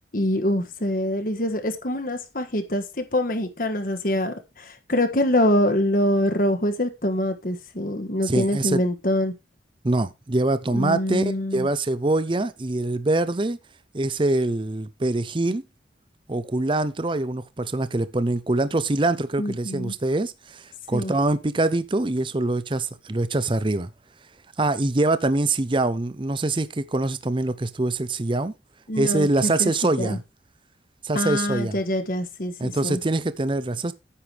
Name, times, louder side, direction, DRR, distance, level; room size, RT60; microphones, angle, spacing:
voice 1, 0.1-9.3 10.7-11.7 19.4-19.9 20.9-21.1 28.9-30.2 31.1-33.0, left 1 dB, 50° left, 1.5 m, -25 dB
voice 2, 8.3-8.8 9.8-13.6 13.9-15.6 16.3-23.9 24.6-28.5 29.0-30.2 31.0-31.8 32.6-33.9, right 2 dB, 30° right, 0.6 m, -24 dB
9.9 x 7.8 x 3.4 m
head